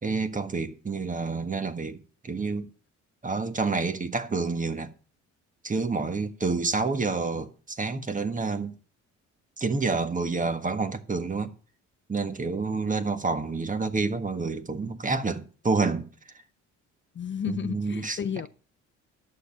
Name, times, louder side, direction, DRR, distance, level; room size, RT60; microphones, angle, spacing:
voice 1, 0.0-2.7 3.2-4.9 5.6-8.7 9.6-11.5 12.1-16.1 17.4-18.2, right 4 dB, 25° right, 1.4 m, -28 dB
voice 2, 17.1-18.5, left 7 dB, 40° left, 0.6 m, -32 dB
11.5 x 6.9 x 7.1 m
cardioid pair, 90°, 30 cm